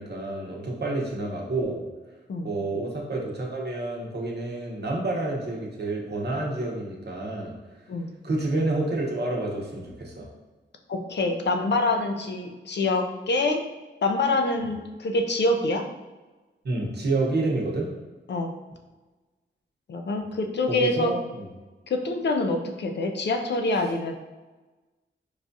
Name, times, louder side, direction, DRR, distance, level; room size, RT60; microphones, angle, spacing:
voice 1, 0.0-1.8 2.4-7.8 8.2-10.3 16.6-17.9 20.7-21.5, right 2 dB, 60° right, -1 dB, 0.8 m, -29 dB
voice 2, 10.9-13.6 14.0-15.9 18.3-18.5 19.9-21.1 21.9-24.2, left 2 dB, 60° left, 4 dB, 0.5 m, -25 dB
4.8 x 2.3 x 2.6 m, 1.2 s
cardioid pair, 65°, 20 cm